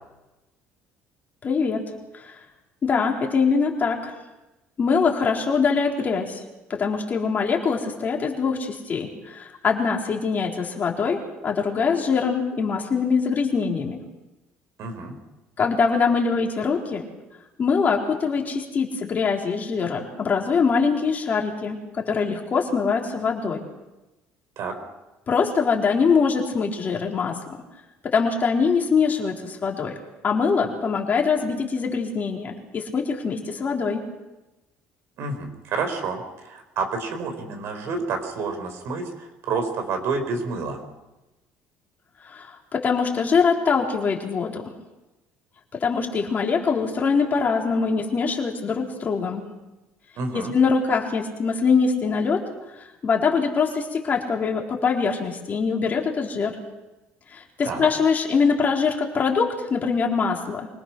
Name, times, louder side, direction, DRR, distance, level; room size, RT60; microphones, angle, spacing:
voice 1, 1.4-2.4 2.8-4.2 4.8-6.4 6.7-14.0 15.6-17.1 17.6-23.6 25.3-27.4 28.0-29.9 30.2-34.1 42.3-44.6 45.8-49.5 50.3-52.4 52.8-56.6 57.3-60.7, left 5 dB, 40° left, 0 dB, 4.1 m, -23 dB
voice 2, 14.8-15.1 24.6-24.7 35.2-40.8 50.2-50.5 57.6-57.9, right 4 dB, 65° right, 6 dB, 4.8 m, -29 dB
25.5 x 19.0 x 6.2 m, 1.0 s
cardioid pair, 110°, 5 cm